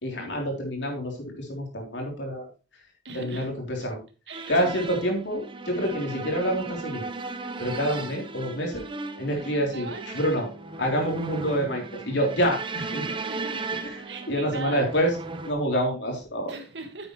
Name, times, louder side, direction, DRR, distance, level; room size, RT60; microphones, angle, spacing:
voice 1, 0.0-2.5 3.1-4.0 4.5-7.0 7.6-8.9 9.2-9.9 10.1-10.5 10.8-13.0 14.3-15.1 15.4-16.5, equal, 75° left, 3.4 m, -27 dB
voice 2, 3.0-3.5 4.3-4.8 7.9-8.2 9.7-10.0 13.3-13.7 14.0-14.8 16.5-17.1, right 4 dB, 70° right, 1.7 m, -39 dB
sound 1, 4.3-15.5, right 3 dB, 30° right, 0.8 m, -36 dB
sound 2, 4.5-14.5, right 3 dB, 90° right, 2.9 m, -47 dB
9.5 x 8.4 x 3.1 m
head